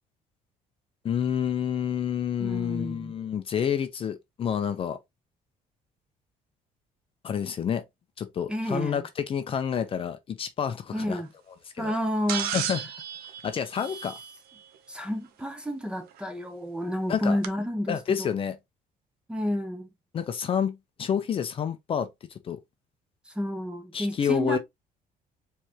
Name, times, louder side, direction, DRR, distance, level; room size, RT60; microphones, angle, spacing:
voice 1, 1.0-5.0 7.2-7.8 8.2-11.2 11.7-11.9 12.5-12.8 13.4-14.2 17.1-17.4 17.9-18.6 20.1-22.6 23.9-24.6, left 8 dB, 35° left, 0.6 m, -29 dB
voice 2, 2.4-3.1 8.5-9.0 10.9-11.3 11.8-12.5 14.9-18.3 19.3-19.9 23.3-24.6, equal, 5° right, 0.9 m, -30 dB
sound 1, 12.3-14.6 16.2-16.3 17.4-17.5, right 9 dB, 80° right, 0.7 m, -33 dB
4.6 x 3.3 x 2.9 m
cardioid pair, 150°, 16 cm